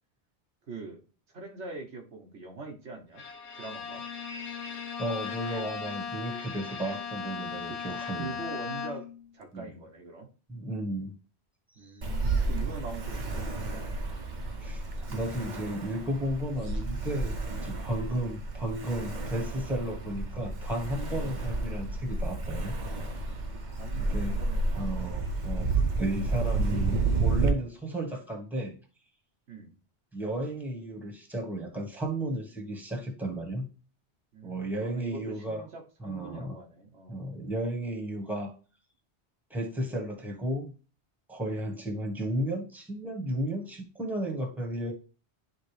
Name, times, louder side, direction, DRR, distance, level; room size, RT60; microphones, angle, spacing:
voice 1, 0.7-1.0 1.3-3.2 3.5-4.0 7.7-9.1 9.3-10.3 11.7-13.8 17.9-18.2 21.2-21.4 23.6-24.9 29.5-29.8 34.3-37.2, right 4 dB, 85° right, 2 dB, 1.4 m, -43 dB
Bowed string instrument, 3.2-9.2, left 6 dB, 80° left, 1.2 m, -37 dB
voice 2, 5.0-8.3 9.5-9.7 10.5-11.2 11.7-11.9 14.6-14.8 15.1-22.8 24.0-24.4 24.8-28.7 30.1-33.7 34.4-35.6 36.0-36.6 37.1-38.5 39.5-40.7 41.3-44.9, right 1 dB, ahead, 1 dB, 1.2 m, -34 dB
Ocean, 12.0-27.5, right 3 dB, 45° right, 0.8 m, -31 dB
11.0 x 3.8 x 3.3 m, 0.37 s
omnidirectional pair, 1.1 m